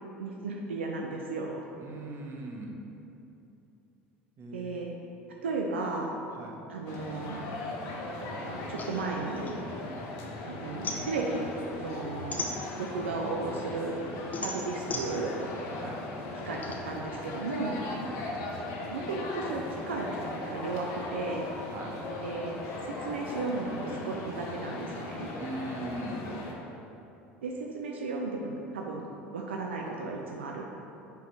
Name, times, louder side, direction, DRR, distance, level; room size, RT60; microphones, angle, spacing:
voice 1, 0.2-1.6 4.5-4.9 5.4-6.1 6.7-7.5 8.5-9.5 10.5-11.5 11.8-12.5 12.8-14.0 14.4-15.3 16.5-17.8 18.9-20.1 20.5-21.5 22.2-25.3 27.4-29.1 29.3-30.7, right 3 dB, 85° right, 0 dB, 0.5 m, -34 dB
voice 2, 1.8-2.8 4.4-4.7 6.3-6.6 15.8-16.0 17.9-18.2 21.7-22.0 25.4-26.3, right 1 dB, 45° right, 0 dB, 1.1 m, -40 dB
sound 1, 6.9-26.5, left 2 dB, 65° left, 1.0 m, -38 dB
sound 2, 8.8-10.3 10.6-13.1 13.6-16.7, left 2 dB, 25° left, 0.8 m, -38 dB
5.5 x 4.5 x 4.6 m, 2.9 s
hypercardioid pair, 75°, 6 cm